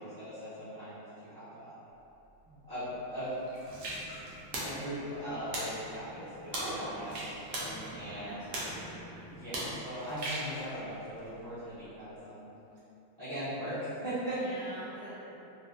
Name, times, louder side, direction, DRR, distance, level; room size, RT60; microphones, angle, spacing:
voice 1, 0.0-1.8 2.4-3.4 4.6-7.2 7.9-8.4 9.3-12.5 13.2-14.4, equal, 35° right, -16 dB, 0.8 m, -39 dB
sound 1, 2.0-5.2 5.6-6.0 6.3-12.2 12.7-12.8, right 1 dB, 85° right, 0.7 m, -45 dB
sound 2, 3.6-9.7, right 1 dB, 70° right, 1.0 m, -41 dB
voice 2, 6.5-7.1 7.7-8.7 14.4-15.3, equal, 65° left, -14 dB, 1.0 m, -44 dB
3.8 x 2.0 x 2.4 m, 3.0 s
omnidirectional pair, 2.2 m